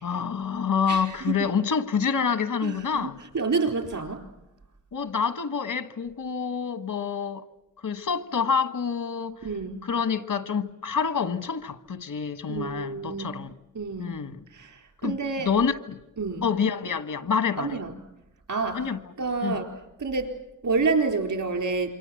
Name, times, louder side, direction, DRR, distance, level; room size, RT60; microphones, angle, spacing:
voice 1, 0.0-3.2 4.9-7.4 7.8-9.4 9.8-13.5 14.0-14.4 15.0-16.0 16.4-17.8 18.7-19.0 19.4-19.6, left 6 dB, 90° left, 1.4 m, -27 dB
voice 2, 0.9-1.4 2.6-4.2 9.4-9.8 12.5-13.3 13.7-14.2 14.5-15.5 16.2-16.5 17.6-17.9 18.5-18.8 19.2-19.7 20.0-21.9, right 4 dB, 70° right, 4.2 m, -28 dB
28.0 x 24.5 x 7.8 m
cardioid pair, 55°, 32 cm